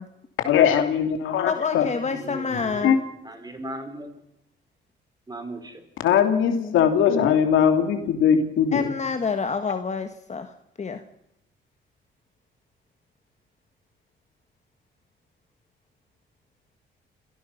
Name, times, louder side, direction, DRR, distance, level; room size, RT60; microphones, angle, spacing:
voice 1, 0.4-1.9 2.8-3.0 6.0-8.9, left 8 dB, 85° left, 6 dB, 2.9 m, -20 dB
voice 2, 1.5-2.9 6.5-6.9 8.7-11.0, left 5 dB, 35° left, 7 dB, 1.7 m, -28 dB
voice 3, 2.1-4.1 5.3-5.8, right 2 dB, 20° right, 7 dB, 4.5 m, -38 dB
28.5 x 16.0 x 5.8 m, 0.81 s
cardioid pair, 90°, 20 cm